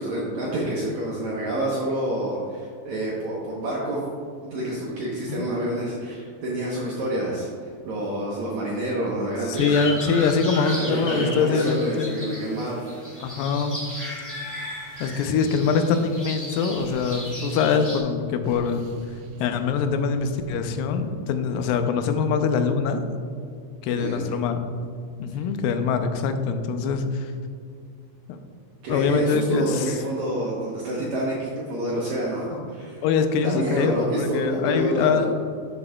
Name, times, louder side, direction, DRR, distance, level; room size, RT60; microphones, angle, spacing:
voice 1, 0.0-4.1 4.4-9.8 10.8-13.3 24.0-24.4 25.3-25.4 28.8-33.0 33.4-35.3, right 1 dB, 65° right, -5 dB, 2.0 m, -28 dB
voice 2, 9.5-12.2 13.2-13.8 15.0-23.0 23.8-24.7 25.2-27.3 28.3-28.4 28.9-30.0 32.5-32.6 33.0-35.3, left 5 dB, 85° left, 7 dB, 2.4 m, -24 dB
sound 1, 9.5-18.0, left 1 dB, 10° left, 0.8 m, -35 dB
Explosion, 16.7-17.3 18.1-22.0, right 2 dB, 90° right, 1.3 m, -47 dB
12.0 x 7.0 x 2.3 m, 2.3 s
omnidirectional pair, 4.1 m